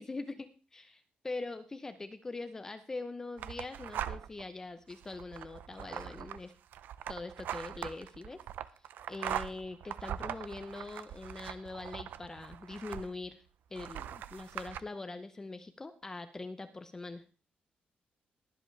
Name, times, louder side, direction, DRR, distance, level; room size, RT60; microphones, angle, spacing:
voice 1, 0.0-6.5 7.1-8.4 9.1-13.4 13.7-17.2, left 3 dB, 15° left, 9 dB, 0.7 m, -42 dB
sound 1, 3.4-4.4 4.9-13.3 13.7-14.8, right 10 dB, 80° right, 0.6 m, -41 dB
21.0 x 7.9 x 3.3 m, 0.35 s
wide cardioid pair, 175°, 3 cm